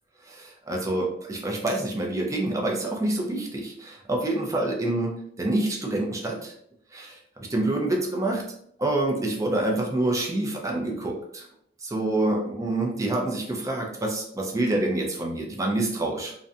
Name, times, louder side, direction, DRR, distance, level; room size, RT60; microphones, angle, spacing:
voice 1, 0.2-6.5 6.9-8.5 8.8-11.5 11.8-16.4, right 2 dB, 15° right, 0 dB, 0.5 m, -27 dB
2.4 x 2.2 x 2.6 m, 0.69 s
head